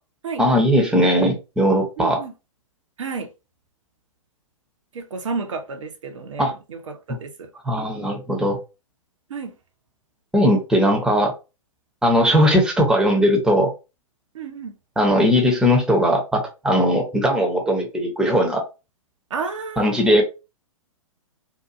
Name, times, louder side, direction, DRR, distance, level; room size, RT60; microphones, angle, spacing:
voice 1, 0.4-2.2 6.4-6.5 7.7-8.6 10.3-11.3 12.0-13.7 15.0-18.6 19.8-20.2, equal, 5° right, 0.8 m, -19 dB
voice 2, 2.0-2.3 3.0-3.3 4.9-7.5 9.3-9.5 14.3-14.7 19.3-19.9, right 5 dB, 65° right, 0.7 m, -31 dB
2.7 x 2.5 x 2.4 m
figure-of-eight pair, 115°, 18 cm